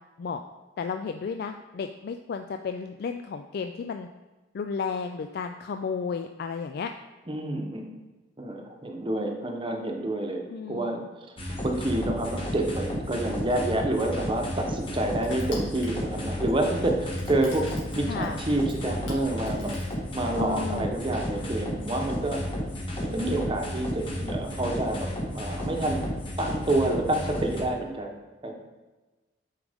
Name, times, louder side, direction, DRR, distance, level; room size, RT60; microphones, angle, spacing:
voice 1, 0.8-4.1 4.5-6.9 10.5-11.0 18.1-18.4 20.4-20.9, left 5 dB, 55° left, 6 dB, 0.3 m, -33 dB
voice 2, 7.3-7.8 8.4-11.0 11.6-17.7 18.0-19.7 20.1-22.4 23.0-26.0 26.4-28.1 28.4-28.5, right 1 dB, 25° right, 2 dB, 0.9 m, -28 dB
sound 1, 11.4-27.6, equal, 30° left, 1.4 m, -32 dB
Crushing, 13.7-20.5, left 3 dB, 80° left, 2.2 m, -47 dB
8.8 x 4.8 x 3.5 m, 1.2 s
head